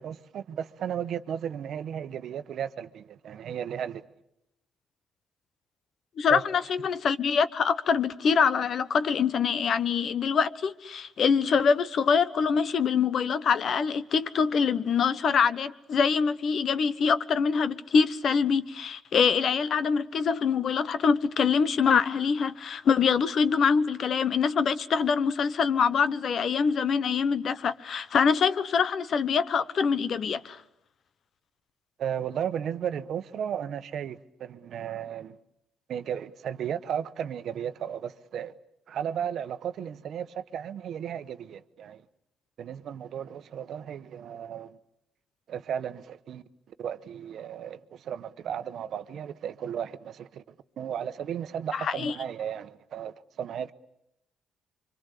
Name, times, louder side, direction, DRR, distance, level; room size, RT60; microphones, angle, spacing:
voice 1, 0.0-4.0 6.3-6.4 32.0-35.4 35.9-38.5 38.9-42.0 42.6-44.8 45.5-46.4 46.8-53.7, right 9 dB, 70° right, 1.0 m, -34 dB
voice 2, 6.2-30.6 51.7-52.1, left 6 dB, 60° left, 1.1 m, -24 dB
25.5 x 25.0 x 8.4 m
cardioid pair, 90°, 0 cm